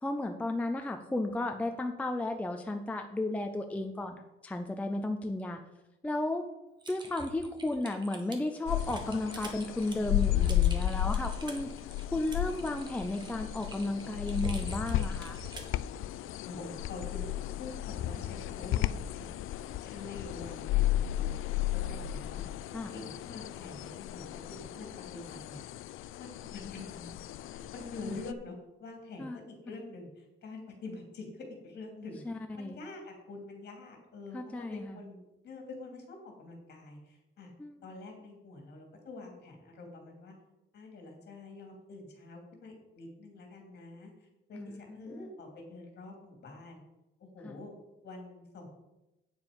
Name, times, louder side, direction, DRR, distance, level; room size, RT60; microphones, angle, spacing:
voice 1, 0.0-4.2 4.4-5.6 6.0-6.5 6.9-11.7 12.1-15.4 22.7-22.9 29.2-29.4 32.2-32.8 34.3-35.0 37.6-37.8 44.5-45.2 47.4-47.5, left 2 dB, 5° left, 5 dB, 0.4 m, -34 dB
Typing, 6.8-15.8, right 2 dB, 20° right, 1.2 m, -45 dB
sound 1, 8.7-28.3, left 13 dB, 75° left, 0.4 m, -34 dB
voice 2, 16.4-17.3 17.6-25.6 26.1-27.2 27.5-32.2 32.5-37.5 37.8-40.3 40.7-46.8 47.2-47.7 48.0-48.7, left 3 dB, 50° left, 2 dB, 2.7 m, -46 dB
8.8 x 7.2 x 5.2 m, 0.96 s
cardioid pair, 175°, 21 cm